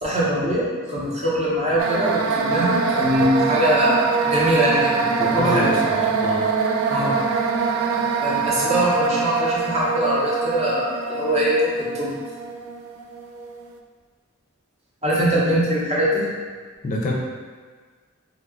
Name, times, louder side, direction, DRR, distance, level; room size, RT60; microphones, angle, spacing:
voice 1, 0.0-5.7 6.9-7.1 8.2-12.1 15.0-16.2, equal, 30° right, -7 dB, 0.8 m, -22 dB
sound 1, 1.8-13.7, right 5 dB, 75° right, 0.3 m, -24 dB
voice 2, 4.8-6.5 16.8-17.1, left 1 dB, 40° left, -1 dB, 0.3 m, -27 dB
2.8 x 2.3 x 3.5 m, 1.5 s
head